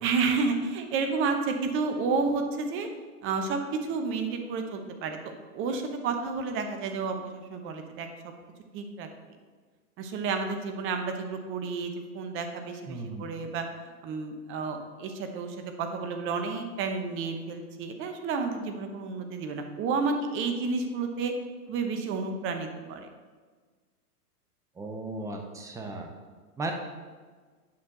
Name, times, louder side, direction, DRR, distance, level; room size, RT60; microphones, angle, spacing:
voice 1, 0.0-2.9 3.2-5.2 5.5-8.3 8.7-9.1 10.0-13.7 14.0-21.3 21.7-23.1, right 4 dB, 25° right, 6 dB, 0.9 m, -31 dB
voice 2, 12.9-13.3 24.8-26.1 26.6-26.7, right 2 dB, 5° right, 3 dB, 0.5 m, -36 dB
8.6 x 6.4 x 3.9 m, 1.5 s
hypercardioid pair, 120°, 47 cm